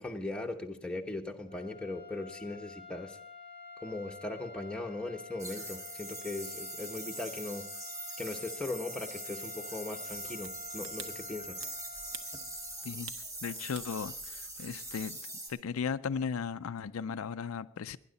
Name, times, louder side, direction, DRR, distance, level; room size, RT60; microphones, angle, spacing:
voice 1, 0.0-3.2 3.8-7.6 8.2-11.6, left 2 dB, 5° left, 1.0 m, -39 dB
sound 1, 1.4-13.0, left 3 dB, 45° right, 4.0 m, -49 dB
sound 2, 5.4-15.5, right 1 dB, 15° right, 3.3 m, -42 dB
sound 3, 10.1-15.1, right 7 dB, 75° right, 1.0 m, -51 dB
voice 2, 13.4-15.2 15.5-18.0, left 6 dB, 75° left, 0.4 m, -36 dB
19.0 x 10.5 x 4.1 m
head